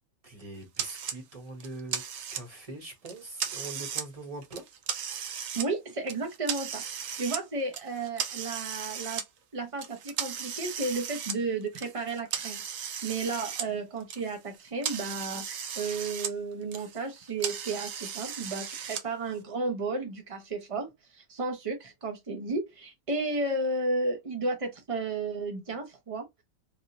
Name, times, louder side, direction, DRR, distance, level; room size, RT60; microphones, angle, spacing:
voice 1, 0.2-2.0 2.3-4.6, right 2 dB, 30° right, 1.0 m, -42 dB
sound 1, 0.8-1.2 1.6-2.7 3.0-4.1 4.4-5.7 6.1-7.4 7.7-9.2 9.8-13.7 14.0-16.3 16.6-19.0, right 8 dB, 70° right, 1.0 m, -36 dB
voice 2, 5.5-9.2 9.5-26.3, right 3 dB, 50° right, 0.4 m, -33 dB
3.4 x 2.4 x 2.7 m
omnidirectional pair, 1.5 m